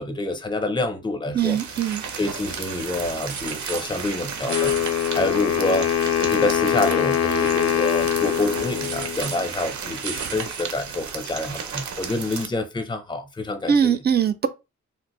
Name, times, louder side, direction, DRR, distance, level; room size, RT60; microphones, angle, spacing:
voice 1, 0.0-5.9 6.2-14.0, left 2 dB, 15° left, 0.6 m, -27 dB
voice 2, 1.4-2.0 13.7-14.5, right 8 dB, 35° right, 0.4 m, -21 dB
sound 1, 1.4-12.5, right 6 dB, 75° right, 0.7 m, -33 dB
Wind instrument woodwind instrument, 4.5-9.5, left 9 dB, 60° left, 0.4 m, -23 dB
3.4 x 2.5 x 2.9 m
wide cardioid pair, 135°, 29 cm